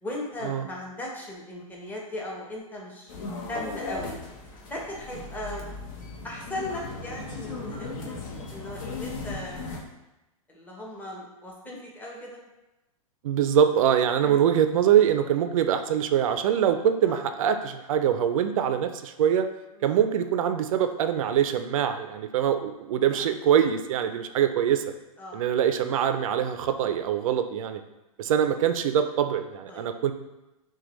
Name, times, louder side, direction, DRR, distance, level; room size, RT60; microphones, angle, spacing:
voice 1, 0.0-4.1 4.7-5.7 6.2-7.9 8.4-9.8 10.5-12.4 14.2-14.5 17.1-17.2 19.7-19.9 23.1-23.3 25.2-25.4 29.7-29.8, left 1 dB, 10° left, -2 dB, 0.8 m, -37 dB
sound 1, 3.1-9.8, left 3 dB, 60° left, 0.9 m, -37 dB
voice 2, 13.2-19.5 19.8-24.8 25.3-27.8 28.2-30.1, right 9 dB, 70° right, 8 dB, 0.4 m, -24 dB
6.2 x 2.3 x 3.1 m, 0.98 s
hypercardioid pair, 135°, 18 cm